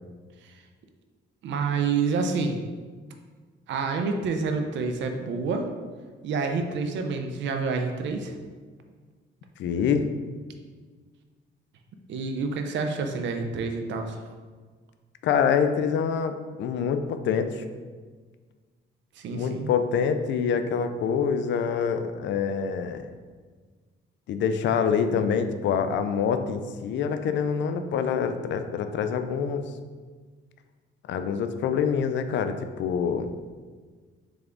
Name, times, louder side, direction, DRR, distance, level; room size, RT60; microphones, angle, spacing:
voice 1, 1.4-2.6 3.7-5.7 6.2-8.4 12.1-14.2 19.2-19.7, right 4 dB, 70° right, 5 dB, 0.5 m, -28 dB
voice 2, 9.6-10.1 15.2-17.6 19.3-23.0 24.3-29.6 31.1-33.3, left 7 dB, 65° left, 8 dB, 0.4 m, -26 dB
3.4 x 3.4 x 3.7 m, 1.5 s
cardioid pair, 90°, 20 cm